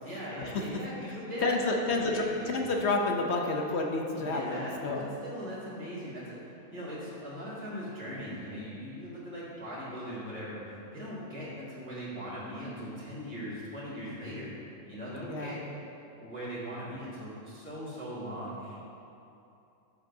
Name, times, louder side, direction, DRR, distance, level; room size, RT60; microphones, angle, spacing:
voice 1, 0.0-2.6 4.1-14.5 14.9-15.6 16.2-18.8, equal, 10° left, -11 dB, 1.9 m, -40 dB
voice 2, 1.4-5.1 15.3-15.6, left 3 dB, 55° left, 1 dB, 0.9 m, -29 dB
12.5 x 6.9 x 2.7 m, 2.8 s
omnidirectional pair, 1.6 m